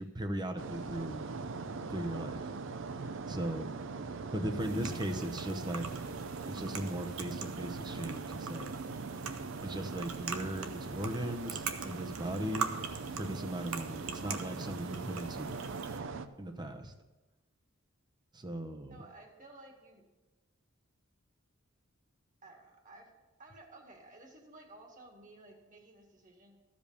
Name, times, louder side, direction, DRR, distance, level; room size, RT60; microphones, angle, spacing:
voice 1, 0.0-1.4 1.9-2.5 3.3-3.7 4.3-5.9 6.5-8.7 9.6-12.7 13.1-15.6 16.4-16.9 18.3-19.1, right 1 dB, 20° right, 6 dB, 0.8 m, -38 dB
sound 1, 0.6-16.3, right 4 dB, 65° right, 0.6 m, -41 dB
sound 2, 4.6-16.0, right 6 dB, 90° right, 1.0 m, -43 dB
voice 2, 18.9-20.0 22.4-23.1 23.4-26.6, right 2 dB, 40° right, 1 dB, 1.9 m, -55 dB
14.0 x 5.2 x 6.7 m, 1.1 s
head